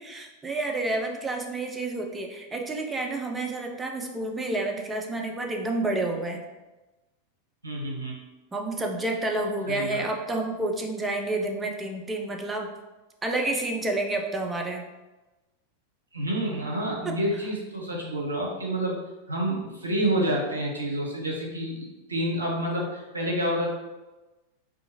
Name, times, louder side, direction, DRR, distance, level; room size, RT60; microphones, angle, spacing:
voice 1, 0.0-6.4 8.5-12.7 13.2-14.8 17.0-17.1, right 2 dB, 15° right, 2 dB, 0.4 m, -29 dB
voice 2, 7.6-8.2 9.7-10.1 16.1-19.0 19.3-23.7, right 1 dB, 80° right, -2 dB, 0.6 m, -28 dB
2.5 x 2.3 x 2.8 m, 1.1 s
figure-of-eight pair, 90°, 0 cm